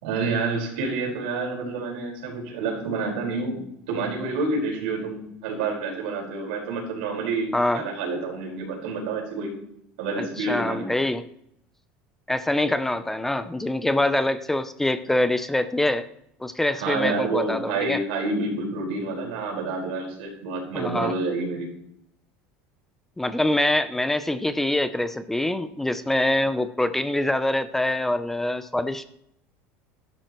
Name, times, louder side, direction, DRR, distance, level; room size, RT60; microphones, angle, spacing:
voice 1, 0.0-9.5 10.0-10.9 16.7-21.7, right 3 dB, 85° right, -1 dB, 4.9 m, -28 dB
voice 2, 10.2-11.3 12.3-16.1 16.4-18.0 20.7-21.1 23.2-29.0, left 1 dB, 5° left, 12 dB, 0.6 m, -24 dB
13.5 x 11.5 x 3.1 m, 0.74 s
supercardioid pair, 135°, 5 cm